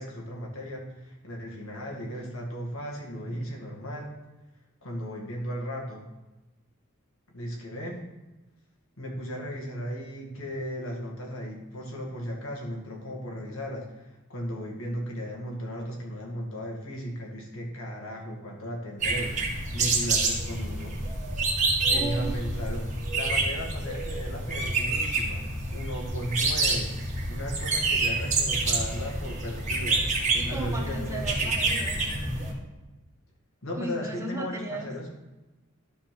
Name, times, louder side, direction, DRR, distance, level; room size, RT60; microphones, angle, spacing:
voice 1, 0.0-4.1 4.8-6.1 7.3-8.0 9.0-21.0 21.8-22.8 23.1-26.9 27.3-31.5 33.6-35.1, equal, 70° left, -1 dB, 2.1 m, -36 dB
sound 1, 19.0-32.5, right 3 dB, 35° right, 1.9 m, -28 dB
voice 2, 21.9-22.4 30.3-32.0 33.7-34.9, right 2 dB, 15° right, 0 dB, 1.1 m, -36 dB
12.0 x 4.3 x 5.9 m, 1.1 s
head